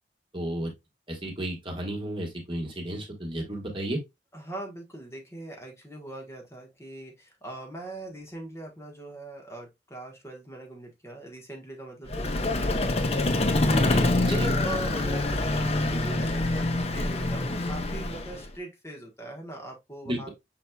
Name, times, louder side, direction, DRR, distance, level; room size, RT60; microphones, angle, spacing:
voice 1, 0.3-0.7 1.1-4.0 13.7-14.5 20.0-20.3, right 1 dB, 30° right, 1.4 m, -33 dB
voice 2, 4.3-13.5 14.3-20.3, right 1 dB, 15° left, 1.1 m, -40 dB
Vehicle, 12.1-18.5, left 2 dB, 35° left, 0.6 m, -26 dB
5.9 x 4.1 x 2.2 m
head